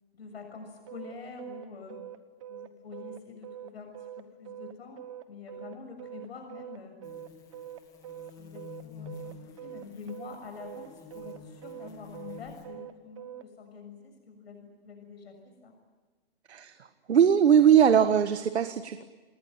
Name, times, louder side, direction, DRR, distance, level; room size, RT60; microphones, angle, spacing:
voice 1, 0.1-2.0 2.5-7.0 8.4-15.7, left 4 dB, 70° left, 4 dB, 6.8 m, -46 dB
sound 1, 0.9-13.5, right 11 dB, 30° right, 1.2 m, -44 dB
sound 2, 7.0-12.7, left 5 dB, 10° left, 2.2 m, -49 dB
voice 2, 17.1-19.0, right 8 dB, 90° right, 10 dB, 1.6 m, -20 dB
28.5 x 20.5 x 9.2 m, 1.3 s
hypercardioid pair, 170°, 32 cm